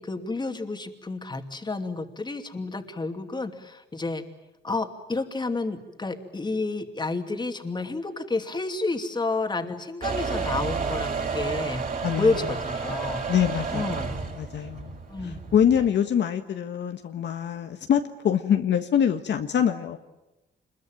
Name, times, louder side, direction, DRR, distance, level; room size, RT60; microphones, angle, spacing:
voice 1, 0.0-4.2 4.6-11.9 12.1-13.2 13.7-14.1 15.1-15.4, left 3 dB, 20° left, 6 dB, 2.6 m, -30 dB
Motor vehicle (road) / Engine starting / Accelerating revving vroom, 10.0-15.9, right 5 dB, 45° right, 7.3 m, -31 dB
voice 2, 13.3-15.0 15.5-20.0, left 9 dB, 65° left, 6 dB, 1.6 m, -24 dB
26.0 x 22.0 x 9.1 m, 0.97 s
cardioid pair, 90°, 20 cm